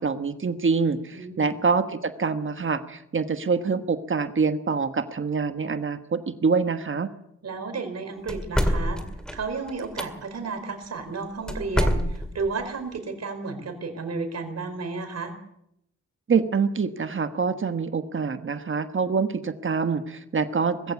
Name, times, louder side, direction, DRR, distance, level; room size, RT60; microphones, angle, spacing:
voice 1, 0.0-7.1 16.3-20.9, right 5 dB, 45° right, 9 dB, 1.3 m, -25 dB
voice 2, 1.1-1.5 7.4-9.0 9.3-15.3, right 4 dB, 60° right, 6 dB, 4.6 m, -32 dB
sound 1, 8.3-10.1 11.5-12.5, equal, ahead, 2.2 m, -26 dB
20.5 x 15.5 x 8.3 m, 0.79 s
wide cardioid pair, 110°, 29 cm